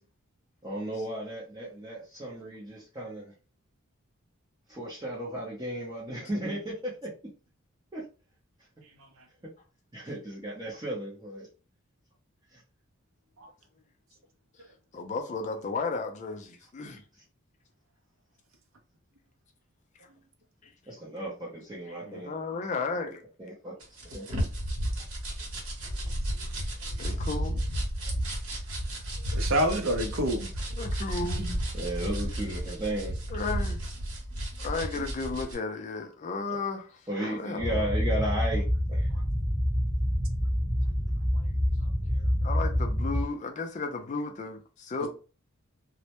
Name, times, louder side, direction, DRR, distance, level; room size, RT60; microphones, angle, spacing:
voice 1, 0.6-3.3 4.7-6.6 7.9-8.0 9.9-11.5 12.5-12.6 20.9-22.3 23.4-23.7 24.1-24.3 24.9-25.1 27.5-27.6 31.7-33.2 37.1-39.1, right 1 dB, 20° right, 0.5 m, -35 dB
voice 2, 14.9-17.0 20.0-20.1 20.6-20.7 21.9-23.2 27.0-27.6 29.2-29.3 30.7-31.5 33.3-33.8 34.6-37.9 41.3-45.1, left 4 dB, 35° left, 0.3 m, -34 dB
sound 1, 23.8-35.5, equal, 90° right, 0.9 m, -33 dB
voice 3, 29.3-30.5 31.4-31.5 45.0-45.1, right 1 dB, 70° right, 0.5 m, -27 dB
sound 2, 37.6-43.2, equal, ahead, 1.0 m, -27 dB
2.1 x 2.1 x 2.8 m
head